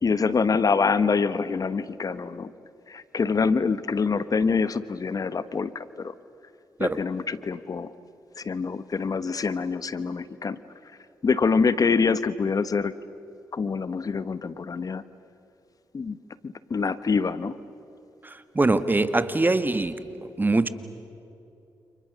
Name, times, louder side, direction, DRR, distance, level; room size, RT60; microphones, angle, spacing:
voice 1, 0.0-2.5 2.9-6.1 6.8-7.9 8.4-10.6 11.2-12.9 13.5-15.0 15.9-16.2 16.4-17.5, left 5 dB, 45° left, 14 dB, 1.2 m, -25 dB
voice 2, 18.2-20.0 20.4-20.7, right 2 dB, 25° right, 11 dB, 1.9 m, -23 dB
30.0 x 28.5 x 6.9 m, 2.8 s
supercardioid pair, 50°, 8 cm